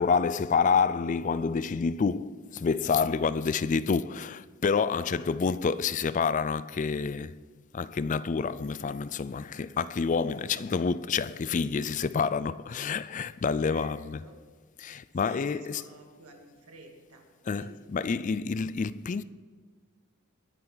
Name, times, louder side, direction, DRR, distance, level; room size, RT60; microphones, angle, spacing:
voice 1, 0.0-7.4 7.7-14.2 14.8-15.8 17.5-19.2, left 5 dB, 35° left, 0.3 m, -28 dB
voice 2, 13.7-14.4 15.1-17.3 17.5-17.8, right 2 dB, 90° right, 2.3 m, -51 dB
21.5 x 10.0 x 4.0 m
head